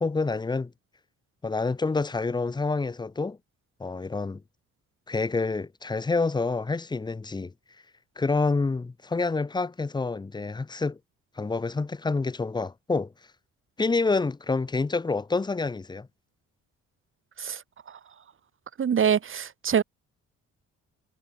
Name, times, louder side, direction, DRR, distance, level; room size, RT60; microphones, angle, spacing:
voice 1, 0.0-0.7 1.4-3.4 3.8-4.4 5.1-7.5 8.2-11.0 11.4-13.1 13.8-16.1, left 3 dB, 15° left, 0.6 m, -27 dB
voice 2, 18.8-19.8, right 7 dB, 45° right, 1.5 m, -25 dB
cardioid pair, 90°, 30 cm